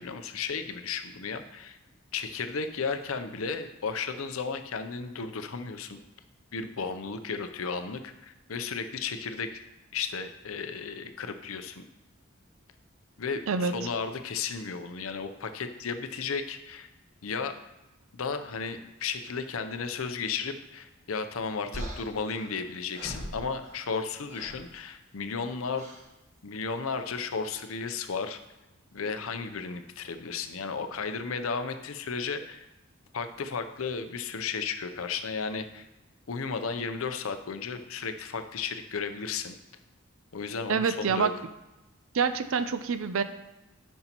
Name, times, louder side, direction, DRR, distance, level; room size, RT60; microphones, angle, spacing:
voice 1, 0.0-1.8 2.1-6.0 6.5-9.6 9.9-11.8 13.2-16.9 17.2-17.5 18.1-25.9 26.4-28.4 28.9-32.6 33.1-35.8 36.3-39.6 40.3-41.3, left 5 dB, 85° left, 8 dB, 0.6 m, -34 dB
sound 1, 21.7-24.0 24.3-24.7 25.7-26.1 27.4-27.7, equal, 35° right, 1.4 m, -41 dB
voice 2, 40.7-41.3 42.1-43.2, right 5 dB, 80° right, 11 dB, 0.5 m, -26 dB
10.5 x 5.5 x 3.0 m, 0.98 s
head